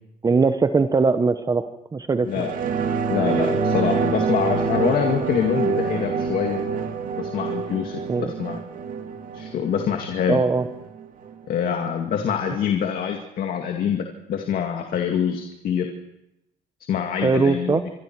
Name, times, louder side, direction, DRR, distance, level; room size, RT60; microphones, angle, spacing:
voice 1, 0.2-2.5 8.1-8.3 10.3-10.7 17.2-17.8, right 4 dB, 20° right, 9 dB, 1.0 m, -21 dB
voice 2, 2.2-2.5 3.1-6.6 7.2-8.6 9.3-10.4 11.5-15.9 16.9-17.8, left 8 dB, 60° left, 3 dB, 2.3 m, -25 dB
sound 1, 2.3-11.3 11.7-11.8, right 5 dB, 55° right, 2.2 m, -26 dB
sound 2, 5.5-10.8, left 2 dB, 85° left, 5.2 m, -42 dB
27.0 x 24.5 x 4.7 m, 0.87 s
cardioid pair, 110°, 17 cm